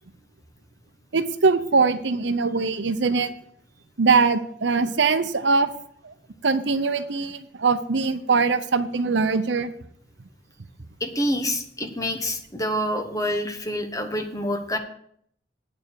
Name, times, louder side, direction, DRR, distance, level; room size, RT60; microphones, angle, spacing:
voice 1, 1.1-3.3 4.0-5.7 6.0-6.1 6.4-9.7, right 4 dB, 75° right, 11 dB, 0.8 m, -22 dB
voice 2, 11.0-14.8, equal, 20° left, 5 dB, 1.2 m, -27 dB
8.9 x 6.9 x 6.9 m, 0.66 s
head